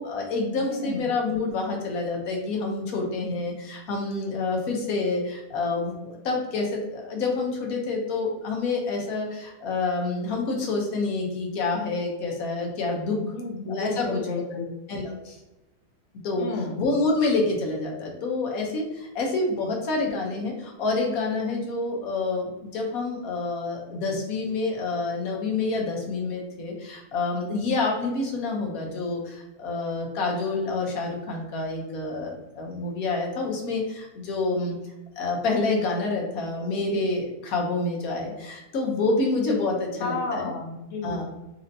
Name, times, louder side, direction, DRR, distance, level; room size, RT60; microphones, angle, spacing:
voice 1, 0.0-13.2 13.7-14.2 14.9-15.4 16.2-16.5 16.7-34.8 35.2-40.5 41.0-41.3, left 3 dB, 60° left, 0 dB, 1.0 m, -28 dB
voice 2, 0.6-1.0 13.2-14.7 16.4-16.7 40.0-41.3, left 3 dB, 75° left, -1 dB, 0.6 m, -32 dB
4.2 x 2.7 x 2.6 m, 0.98 s
omnidirectional pair, 2.1 m